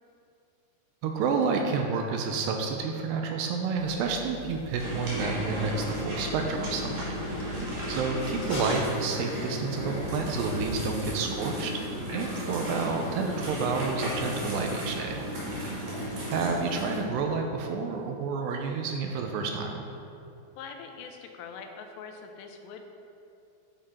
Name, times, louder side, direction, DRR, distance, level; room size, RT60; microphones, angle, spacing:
voice 1, 1.0-7.1 7.9-11.8 12.1-15.2 15.7-16.0 16.3-19.8, right 5 dB, 80° right, 3 dB, 2.7 m, -30 dB
sound 1, 3.8-8.8, left 4 dB, 55° left, 1.1 m, -43 dB
sound 2, 4.8-17.0, equal, 45° right, 3.0 m, -34 dB
voice 2, 20.6-22.9, left 5 dB, 85° left, 4 dB, 2.8 m, -43 dB
9.7 x 7.7 x 4.4 m, 2.7 s
omnidirectional pair, 5.0 m